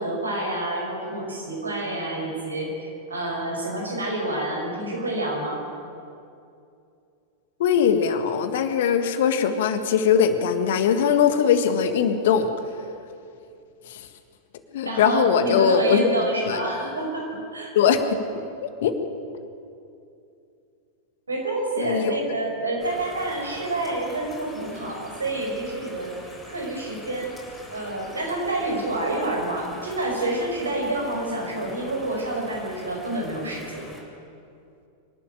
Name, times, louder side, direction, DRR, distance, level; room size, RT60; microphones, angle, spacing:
voice 1, 0.0-5.6 14.8-17.2 17.5-17.7 21.3-26.2 26.5-27.3 27.7-33.9, right 2 dB, 75° right, 0 dB, 5.4 m, -28 dB
voice 2, 7.6-12.5 13.9-14.1 14.7-16.1 16.4-16.6 17.7-18.0 18.6-18.9 21.8-22.2, left 7 dB, 55° left, 9 dB, 1.6 m, -21 dB
sound 1, 22.8-34.0, left 1 dB, 10° left, 3.7 m, -44 dB
25.0 x 12.0 x 9.2 m, 2.5 s
figure-of-eight pair, 90°, 0 cm